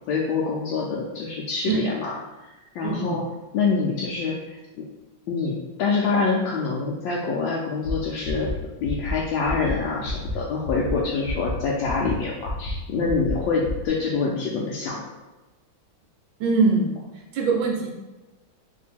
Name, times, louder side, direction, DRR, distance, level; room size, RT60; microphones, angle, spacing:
voice 1, 0.1-2.2 2.7-3.2 3.5-4.4 4.8-4.9 5.3-8.5 8.8-15.0, left 4 dB, 75° left, -3 dB, 1.3 m, -25 dB
voice 2, 2.8-3.2 16.4-16.9 17.3-17.9, right 4 dB, 75° right, 0 dB, 1.6 m, -22 dB
sound 1, 7.8-7.9 8.2-8.5 8.8-9.1 9.4-9.7 10.0-10.3 10.6-10.9 11.2-11.5 11.8-12.1 12.4-12.7 13.0-13.3 13.6-13.9, left 1 dB, 60° left, 0.6 m, -31 dB
3.6 x 2.7 x 4.2 m, 1.1 s
omnidirectional pair, 2.2 m